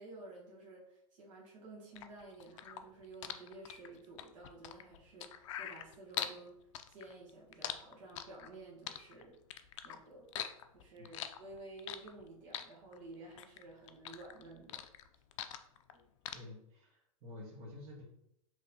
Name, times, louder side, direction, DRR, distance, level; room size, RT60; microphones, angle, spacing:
voice 1, 0.0-6.6 6.9-9.4 9.8-10.3 10.7-14.8, right 2 dB, 60° right, -3 dB, 1.3 m, -52 dB
sound 1, 2.0-6.4 6.7-8.5 8.9-10.0 10.3-12.2 12.5-13.6 13.9-15.9 16.3-16.4, left 11 dB, 60° left, 0.4 m, -42 dB
voice 2, 16.3-18.0, left 2 dB, 35° right, -3 dB, 1.3 m, -50 dB
3.9 x 3.0 x 2.8 m, 0.78 s
hypercardioid pair, 125°, 18 cm